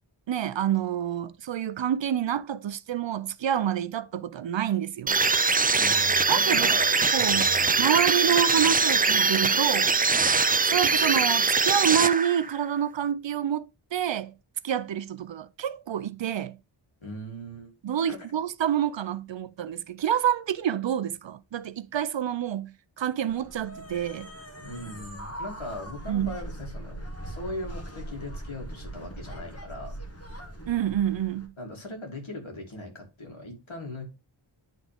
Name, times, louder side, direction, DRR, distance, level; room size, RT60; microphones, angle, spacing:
voice 1, 0.3-5.2 6.3-6.7 7.1-7.5 7.8-9.9 10.6-13.7 13.9-14.3 14.6-16.6 17.8-24.3 26.1-26.4 30.7-31.5, right 10 dB, 65° right, 0.6 m, -27 dB
sound 1, 5.1-12.6, right 4 dB, 20° right, 0.3 m, -22 dB
voice 2, 5.8-7.8 17.0-17.7 24.6-30.0 31.6-34.1, left 1 dB, 75° left, 2.6 m, -39 dB
sound 2, 23.3-31.5, right 1 dB, 30° left, 1.4 m, -40 dB
10.5 x 3.7 x 3.5 m
wide cardioid pair, 85°, 48 cm